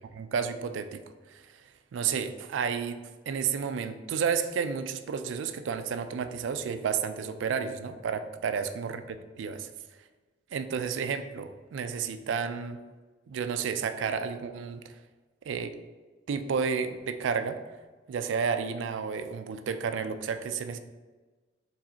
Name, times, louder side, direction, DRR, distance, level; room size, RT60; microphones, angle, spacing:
voice 1, 0.1-1.0 1.3-1.5 1.9-9.0 9.4-9.7 10.5-12.8 13.3-14.9 15.5-15.7 16.3-17.6 18.1-20.8, right 6 dB, 85° right, 9 dB, 0.3 m, -31 dB
4.7 x 3.4 x 2.8 m, 1.3 s
head